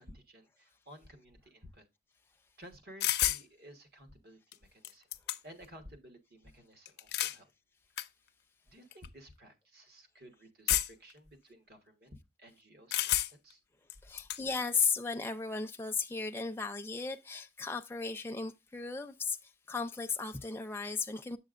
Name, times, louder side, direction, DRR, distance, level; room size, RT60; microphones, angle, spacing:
voice 1, 0.0-1.9 2.6-5.1 5.4-7.5 8.7-13.6, equal, 60° right, 1.3 m, -55 dB
sound 1, 3.0-3.4 4.5-4.6 4.8-5.7 6.9-7.4 8.0-8.1 8.9-9.1 10.7-11.1 12.9-13.5 13.9-14.4, left 13 dB, 70° left, 0.5 m, -31 dB
voice 2, 14.0-19.4 19.7-21.4, left 5 dB, 15° left, 0.4 m, -35 dB
7.6 x 6.7 x 2.4 m
head